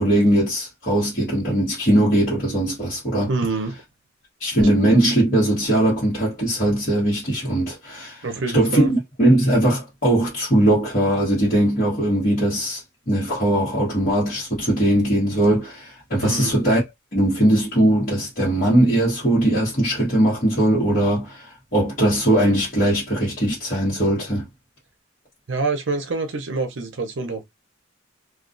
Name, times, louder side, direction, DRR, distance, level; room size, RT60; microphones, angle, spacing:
voice 1, 0.0-3.3 4.4-8.3 8.5-16.8 17.1-24.5, right 1 dB, 45° left, 1.1 m, -20 dB
voice 2, 3.3-3.8 8.2-8.9 16.2-16.5 25.5-27.4, right 3 dB, 65° right, 0.6 m, -26 dB
2.3 x 2.3 x 2.5 m
head